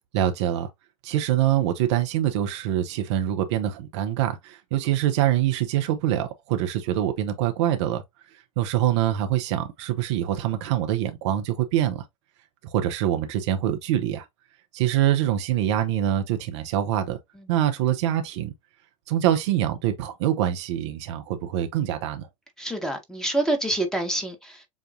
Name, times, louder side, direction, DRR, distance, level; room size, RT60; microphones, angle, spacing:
voice 1, 0.1-0.7 1.0-8.0 8.6-12.0 12.6-14.2 14.7-17.2 17.5-18.5 19.1-22.3, right 11 dB, 60° right, 0.8 m, -24 dB
voice 2, 22.6-24.7, right 1 dB, 5° left, 1.4 m, -27 dB
7.2 x 2.5 x 2.6 m
figure-of-eight pair, 80°, 17 cm